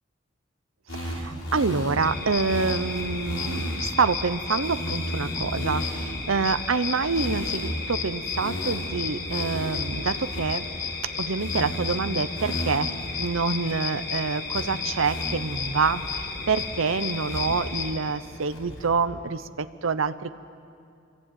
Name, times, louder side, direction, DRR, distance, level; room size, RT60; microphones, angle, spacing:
sound 1, 0.9-3.9 4.3-4.4 4.6-6.3 7.0-7.9 8.2-11.1 11.4-11.9 12.3-13.1 13.3-13.4 13.7-14.1 14.5-14.6 15.0-16.2 16.6-17.7 18.1-18.9, equal, 80° left, 6.9 m, -34 dB
voice 1, 0.9-10.7 11.2-12.9 13.2-20.3, right 4 dB, 90° right, 12 dB, 0.9 m, -27 dB
sound 2, 2.0-17.9, left 5 dB, 55° left, 4.1 m, -33 dB
27.0 x 23.5 x 9.3 m, 2.4 s
head